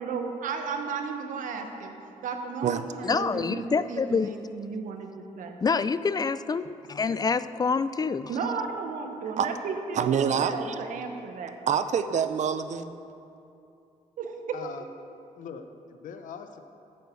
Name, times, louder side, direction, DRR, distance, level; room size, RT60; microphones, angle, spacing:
voice 1, 0.0-2.0 2.2-5.6 8.3-11.5 14.2-14.6, right 5 dB, 85° right, 5 dB, 1.1 m, -34 dB
voice 2, 3.0-4.3 5.6-8.3, left 5 dB, 30° left, 14 dB, 0.4 m, -26 dB
voice 3, 9.9-10.8 11.7-12.9, right 7 dB, 65° right, 11 dB, 0.6 m, -26 dB
voice 4, 14.5-14.9 15.4-16.6, left 6 dB, 85° left, 8 dB, 0.8 m, -41 dB
8.7 x 8.0 x 7.1 m, 2.6 s
cardioid pair, 90°, 13 cm